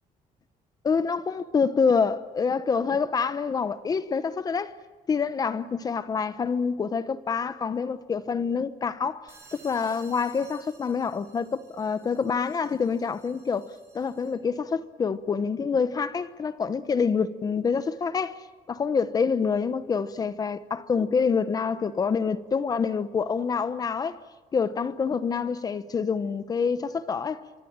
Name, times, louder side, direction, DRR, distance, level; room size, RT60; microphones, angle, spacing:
voice 1, 0.8-4.7 5.1-13.7 13.9-18.4 18.7-24.2 24.5-27.4, left 5 dB, 25° left, 0.9 m, -27 dB
sound 1, 9.3-14.5, right 4 dB, 20° right, 6.3 m, -55 dB
26.5 x 24.5 x 8.7 m
cardioid pair, 175°, 14 cm